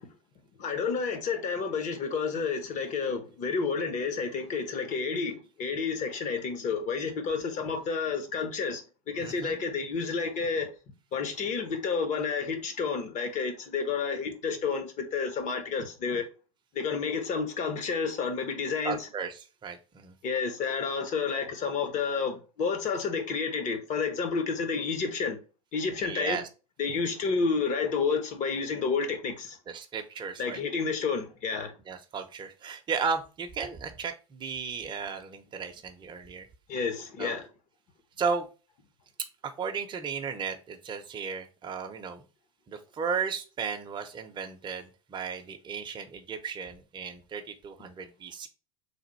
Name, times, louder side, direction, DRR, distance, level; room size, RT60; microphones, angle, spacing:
voice 1, 0.6-8.8 9.1-10.7 11.1-16.2 16.7-19.0 20.2-25.4 25.7-26.4 26.8-29.6 30.4-31.7 36.7-37.5, left 5 dB, 40° left, 1.1 m, -30 dB
voice 2, 9.2-9.6 18.8-20.1 26.0-26.5 29.7-30.6 31.9-36.5 37.2-37.4 38.2-38.5 39.4-42.2 42.7-48.5, right 6 dB, 25° right, 0.7 m, -35 dB
3.4 x 2.5 x 4.1 m
hypercardioid pair, 85°, 18 cm